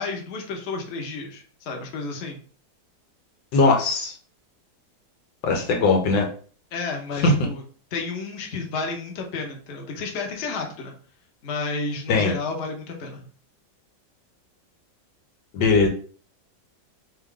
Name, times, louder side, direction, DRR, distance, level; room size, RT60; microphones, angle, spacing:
voice 1, 0.0-2.4 6.7-7.6 7.9-10.9 11.4-13.2, left 4 dB, 50° left, 2 dB, 1.0 m, -31 dB
voice 2, 3.5-4.1 5.4-6.3 7.2-7.3 12.1-12.3 15.5-15.9, left 3 dB, 90° left, 1 dB, 1.7 m, -19 dB
3.6 x 3.6 x 3.7 m, 0.43 s
omnidirectional pair, 2.0 m